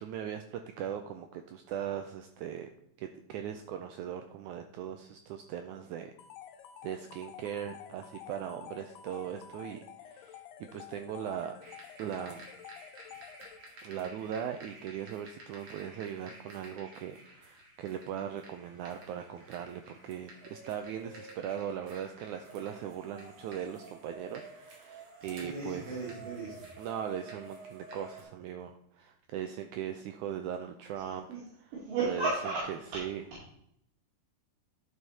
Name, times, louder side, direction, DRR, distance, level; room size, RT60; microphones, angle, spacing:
voice 1, 0.0-2.7 3.0-6.1 6.8-11.6 12.0-12.4 13.8-25.8 26.8-31.3 32.0-32.3 33.0-33.2, right 9 dB, 85° right, 7 dB, 1.7 m, -39 dB
sound 1, 6.2-13.9, left 9 dB, 80° left, 2.3 m, -50 dB
sound 2, 11.6-28.2, right 2 dB, 45° right, 2.3 m, -51 dB
voice 2, 25.4-26.6 31.0-31.4 31.7-33.0 33.3-33.5, right 3 dB, 70° right, -6 dB, 3.7 m, -35 dB
12.0 x 5.0 x 4.1 m, 0.74 s
omnidirectional pair, 4.0 m